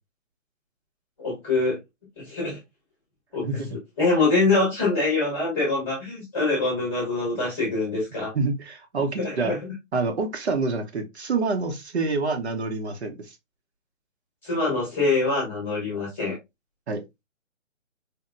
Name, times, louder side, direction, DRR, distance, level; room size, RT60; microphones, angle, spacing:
voice 1, 1.2-1.8 2.2-2.6 3.3-3.5 4.0-8.3 9.2-9.6 14.4-16.4, left 3 dB, 5° left, 1.1 m, -24 dB
voice 2, 8.3-9.5 9.9-13.3 16.9-17.0, right 3 dB, 55° right, 1.0 m, -27 dB
4.4 x 2.8 x 2.5 m
hypercardioid pair, 170°, 38 cm